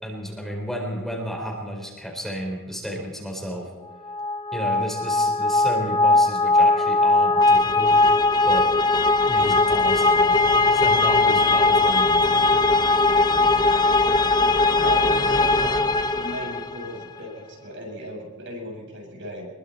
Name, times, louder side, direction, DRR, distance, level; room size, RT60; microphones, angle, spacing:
voice 1, 0.0-3.7 4.5-8.0 8.4-8.7 9.3-12.5, equal, ahead, 0 dB, 4.5 m, -32 dB
sound 1, 4.1-16.9, left 3 dB, 20° left, 0.7 m, -19 dB
voice 2, 14.8-15.9 16.1-19.5, equal, 55° right, 0 dB, 7.9 m, -35 dB
26.5 x 22.5 x 4.4 m, 1.2 s
head